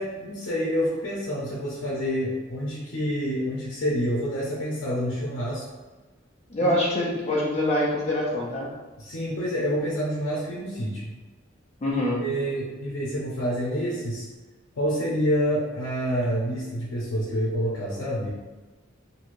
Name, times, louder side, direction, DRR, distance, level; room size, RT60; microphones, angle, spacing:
voice 1, 0.0-5.6 6.6-6.7 9.0-11.1 11.9-14.3 14.8-18.3, equal, 85° left, -6 dB, 0.7 m, -28 dB
voice 2, 6.5-8.7 11.8-12.3, left 1 dB, 35° left, -4 dB, 0.6 m, -25 dB
3.2 x 2.7 x 2.6 m, 1.2 s
head